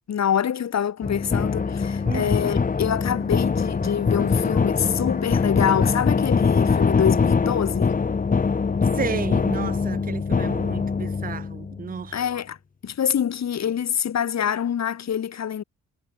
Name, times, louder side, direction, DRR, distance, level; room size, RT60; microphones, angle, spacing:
voice 1, 0.1-8.0 12.1-12.6 12.8-15.6, left 9 dB, 50° left, 1.1 m, -25 dB
sound 1, 1.0-12.0, left 5 dB, 25° left, 0.8 m, -23 dB
voice 2, 8.9-12.2, right 6 dB, 25° right, 0.6 m, -32 dB
supercardioid pair, 50°, 34 cm